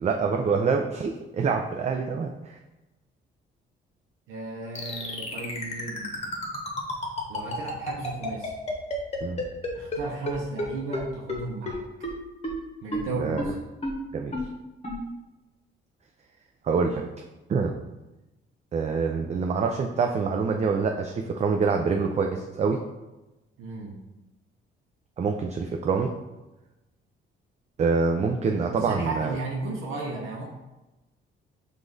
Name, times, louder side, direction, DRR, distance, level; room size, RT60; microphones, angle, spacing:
voice 1, 0.0-2.6 9.2-9.4 13.2-13.4 14.1-14.4 16.6-17.0 17.5-17.7 18.7-22.8 25.2-26.1 27.8-29.3, right 5 dB, 35° right, 3 dB, 0.4 m, -26 dB
voice 2, 4.3-6.2 7.3-8.5 9.7-11.8 12.8-13.6 23.6-24.0 28.7-30.5, right 3 dB, 85° right, 0 dB, 0.7 m, -34 dB
sound 1, 4.8-10.0 10.3-10.4 10.6-10.7 10.9-11.0 11.3-11.4 11.7-11.8 12.0-12.1 12.4-12.5 12.9-13.0 13.4-13.5 13.8-13.9 14.3-14.4 14.8-15.0, left 1 dB, 30° left, 1.0 m, -30 dB
4.9 x 2.5 x 3.8 m, 1.0 s
cardioid pair, 90°, 20 cm